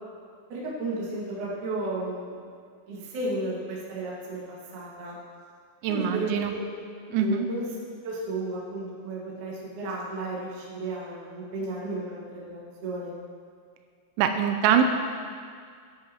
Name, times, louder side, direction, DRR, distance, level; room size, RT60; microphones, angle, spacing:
voice 1, 0.5-2.4 2.8-5.1 5.9-6.6 7.2-7.7 8.0-13.1, right 2 dB, 50° right, -6 dB, 2.7 m, -33 dB
voice 2, 5.8-6.5 7.1-7.5 14.2-14.8, right 8 dB, 90° right, 5 dB, 3.3 m, -23 dB
15.5 x 11.5 x 3.0 m, 2.1 s
omnidirectional pair, 5.8 m